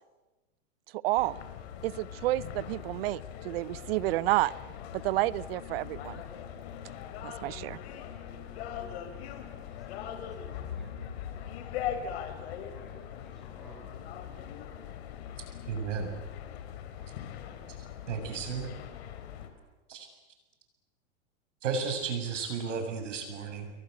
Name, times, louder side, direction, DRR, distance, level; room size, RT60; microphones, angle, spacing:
voice 1, 1.0-1.4 1.8-4.5 4.9-6.2 7.2-7.8, right 18 dB, 55° right, 21 dB, 0.8 m, -30 dB
sound 1, 1.2-19.5, left 9 dB, 60° left, 3.8 m, -41 dB
voice 2, 8.7-9.3 9.6-10.3 10.7-11.5 12.5-14.0 16.9-17.6, right 1 dB, ahead, 0 dB, 6.8 m, -58 dB
voice 3, 15.7-16.1 18.1-18.7 19.9-20.1 21.6-23.7, right 5 dB, 90° right, 5 dB, 7.6 m, -33 dB
29.5 x 22.5 x 8.2 m, 1.1 s
supercardioid pair, 155°, 36 cm